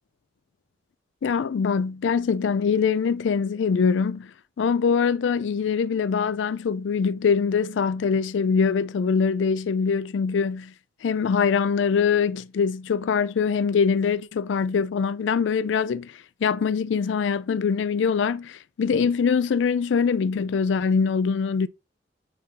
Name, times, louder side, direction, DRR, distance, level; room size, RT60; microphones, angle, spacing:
voice 1, 1.2-4.3 4.6-10.7 11.0-21.7, left 6 dB, 75° left, 0.4 m, -23 dB
8.9 x 3.7 x 4.1 m
head